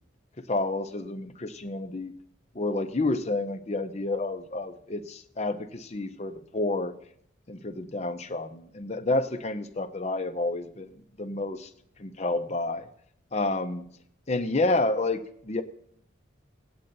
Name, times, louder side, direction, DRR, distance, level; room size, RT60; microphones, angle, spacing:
voice 1, 0.5-2.1 2.5-6.9 7.5-10.9 11.2-11.7 12.0-12.9 13.3-13.9 14.3-15.6, left 2 dB, 35° left, 8 dB, 0.6 m, -29 dB
19.0 x 8.6 x 2.6 m, 0.67 s
head